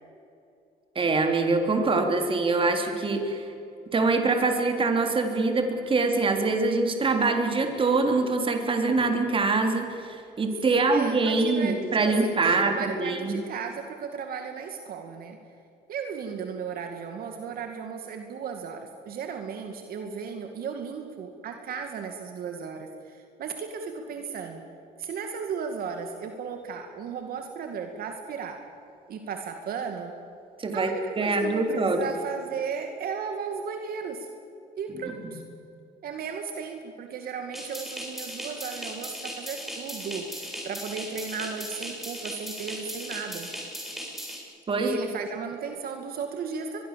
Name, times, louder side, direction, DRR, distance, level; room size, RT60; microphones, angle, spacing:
voice 1, 1.0-3.5 3.9-13.4 30.6-32.0 35.2-35.3 44.7-45.0, right 3 dB, 30° right, 4 dB, 3.6 m, -24 dB
voice 2, 10.7-15.4 15.9-24.6 25.0-28.6 29.1-30.2 30.7-34.3 34.8-35.4 36.0-43.5 44.8-46.8, right 6 dB, 60° right, 5 dB, 2.3 m, -35 dB
sound 1, 37.5-44.4, equal, ahead, 7.4 m, -37 dB
24.0 x 22.0 x 7.6 m, 2.6 s
cardioid pair, 110°, 17 cm